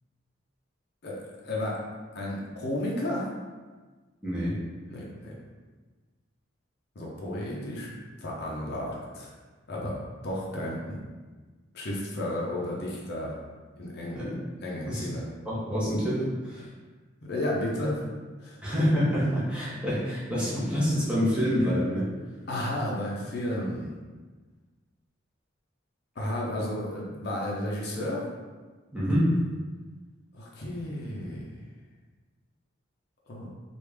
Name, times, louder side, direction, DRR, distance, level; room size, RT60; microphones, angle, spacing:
voice 1, 1.0-1.8 2.1-3.3 4.9-5.3 7.0-7.9 8.2-9.3 9.7-10.0 10.2-11.0 11.7-13.4 13.8-14.2 14.6-15.2 17.2-18.1 18.4-18.6 22.5-24.0 26.2-28.3 30.3-31.6 33.3-33.5, left 1 dB, 55° left, -4 dB, 0.6 m, -32 dB
voice 2, 4.2-4.5 14.1-14.3 14.9-15.1 15.4-16.7 18.6-22.1 28.9-29.3, equal, 5° right, -9 dB, 0.9 m, -26 dB
3.3 x 2.5 x 3.3 m, 1.3 s
head